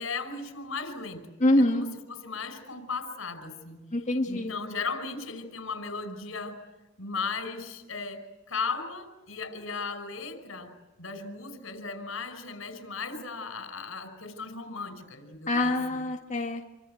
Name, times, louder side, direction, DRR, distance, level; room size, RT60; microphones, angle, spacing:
voice 1, 0.0-1.3 1.6-3.8 4.2-6.6 7.0-16.0, left 4 dB, 85° left, 9 dB, 5.4 m, -36 dB
voice 2, 1.4-1.9 3.9-4.5 15.5-16.7, left 1 dB, 35° left, 1 dB, 2.0 m, -25 dB
27.5 x 25.0 x 8.0 m, 1.1 s
head